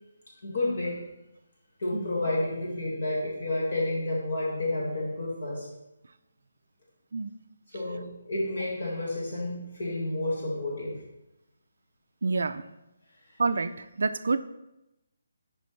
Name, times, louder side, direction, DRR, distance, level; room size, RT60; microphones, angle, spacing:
voice 1, 0.4-1.0 1.8-5.7 7.7-11.0, left 2 dB, 60° left, -4 dB, 1.7 m, -30 dB
voice 2, 12.2-12.6 13.4-14.4, right 4 dB, 65° right, 11 dB, 0.3 m, -27 dB
8.3 x 5.2 x 3.2 m, 0.91 s
hypercardioid pair, 170°, 0 cm